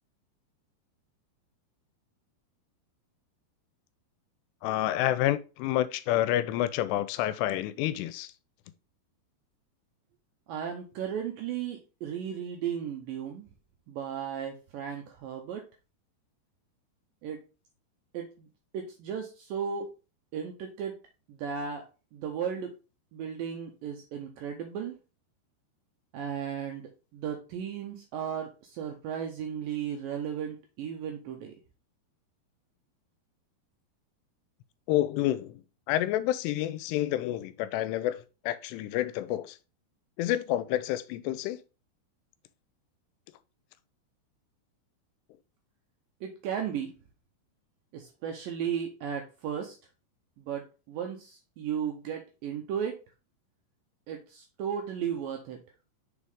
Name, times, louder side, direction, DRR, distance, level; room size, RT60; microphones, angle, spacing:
voice 1, 4.6-8.3 34.9-35.6 35.9-39.6 40.2-41.6, left 13 dB, 90° left, 2.7 m, -29 dB
voice 2, 10.5-13.5 13.9-15.6 17.2-17.4 18.1-18.5 18.7-19.9 20.3-20.9 21.3-21.9 22.1-22.7 23.1-24.9 26.1-31.6 46.2-47.0 47.9-49.8 50.4-53.0 54.1-55.6, right 8 dB, 85° right, 2.0 m, -35 dB
6.5 x 4.1 x 3.5 m
omnidirectional pair, 4.8 m